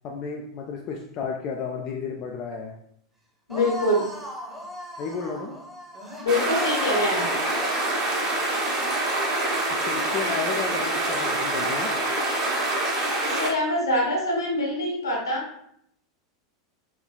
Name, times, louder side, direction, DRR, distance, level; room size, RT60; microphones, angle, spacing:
voice 1, 0.0-2.7 5.0-5.6 9.8-11.9, left 5 dB, 35° left, 1 dB, 0.4 m, -32 dB
voice 2, 3.5-4.0 6.2-7.3 13.2-15.5, left 1 dB, 70° left, -1 dB, 1.2 m, -24 dB
sound 1, 3.5-8.4, left 1 dB, 5° right, 0.9 m, -37 dB
sound 2, 6.3-13.5, right 2 dB, 40° right, 1.0 m, -26 dB
4.3 x 3.2 x 2.2 m, 0.70 s
figure-of-eight pair, 90°, 2 cm